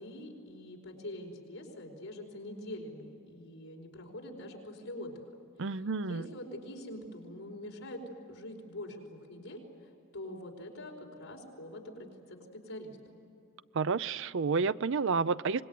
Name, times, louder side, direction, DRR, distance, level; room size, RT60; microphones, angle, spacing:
voice 1, 0.0-5.2 6.0-9.6 10.1-13.2, left 1 dB, 70° left, 0 dB, 4.8 m, -44 dB
voice 2, 5.6-6.3 13.7-15.6, right 4 dB, 60° right, 16 dB, 0.5 m, -30 dB
25.5 x 20.5 x 9.3 m, 2.7 s
head